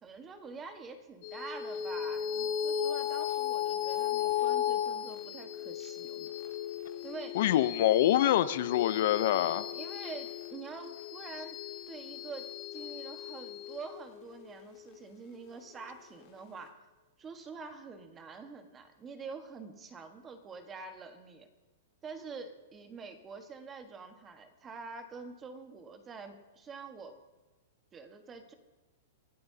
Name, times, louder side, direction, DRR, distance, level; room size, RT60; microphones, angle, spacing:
voice 1, 0.0-6.3 7.0-7.4 9.7-11.6 11.9-12.5 12.7-16.8 17.2-21.5 22.0-27.2 27.9-28.5, right 4 dB, 20° right, 6 dB, 1.4 m, -46 dB
sound 1, 1.2-16.0, left 10 dB, 40° left, 1.8 m, -36 dB
voice 2, 7.3-9.7, left 12 dB, 60° left, 14 dB, 0.6 m, -25 dB
28.0 x 12.5 x 2.8 m, 1.2 s
hypercardioid pair, 150°, 0 cm